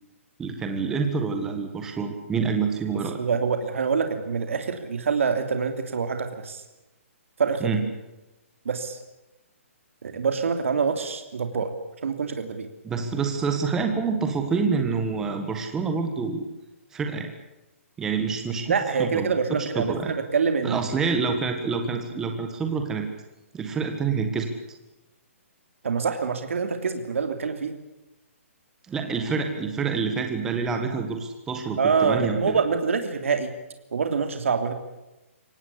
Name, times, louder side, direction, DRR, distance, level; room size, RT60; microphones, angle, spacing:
voice 1, 0.4-3.2 7.6-7.8 12.8-16.4 16.9-17.3 18.0-20.1 20.6-23.1 23.5-24.5 28.9-32.6, right 5 dB, 5° right, 5 dB, 1.6 m, -27 dB
voice 2, 3.1-6.6 7.4-7.7 8.6-9.0 10.0-11.7 12.0-12.7 18.7-20.8 25.8-27.7 31.8-33.5 33.9-34.7, right 5 dB, 65° right, 7 dB, 3.0 m, -25 dB
24.5 x 18.0 x 8.5 m, 0.99 s
hypercardioid pair, 175°, 8 cm